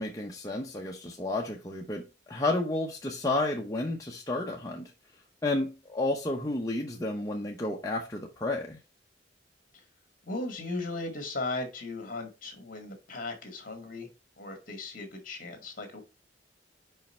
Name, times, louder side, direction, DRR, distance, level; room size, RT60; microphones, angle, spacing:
voice 1, 0.0-4.9 5.4-8.8, left 2 dB, 20° left, 0.8 m, -31 dB
voice 2, 10.2-14.1 14.4-16.0, left 2 dB, 45° left, 1.9 m, -37 dB
5.5 x 5.3 x 4.3 m
head